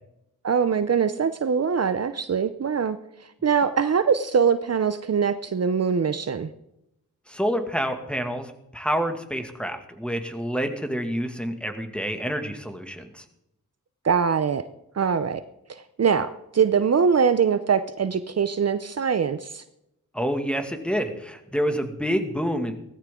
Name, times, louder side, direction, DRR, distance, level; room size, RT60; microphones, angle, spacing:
voice 1, 0.4-3.0 3.4-6.5 14.0-14.6 14.9-15.4 15.7-19.6, right 6 dB, 50° right, 12 dB, 0.7 m, -23 dB
voice 2, 7.3-13.2 20.1-22.7, equal, 5° left, 6 dB, 2.1 m, -28 dB
17.5 x 14.0 x 3.8 m, 0.84 s
cardioid pair, 60°, 32 cm